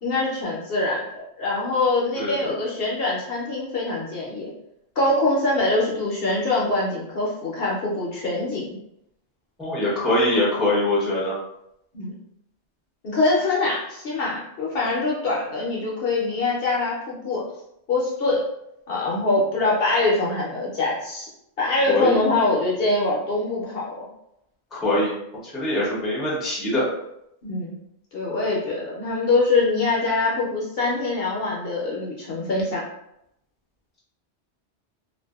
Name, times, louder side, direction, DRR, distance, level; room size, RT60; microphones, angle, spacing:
voice 1, 0.0-4.5 5.0-8.6 11.9-12.1 13.0-17.4 17.9-18.5 18.9-21.3 21.6-24.0 27.4-27.8 28.1-32.8, left 2 dB, 65° left, -4 dB, 0.8 m, -24 dB
voice 2, 2.2-2.5 9.6-11.3 21.9-22.2 24.7-25.1 25.4-26.9, left 1 dB, ahead, -7 dB, 0.5 m, -23 dB
2.5 x 2.2 x 2.2 m, 0.80 s
omnidirectional pair, 1.1 m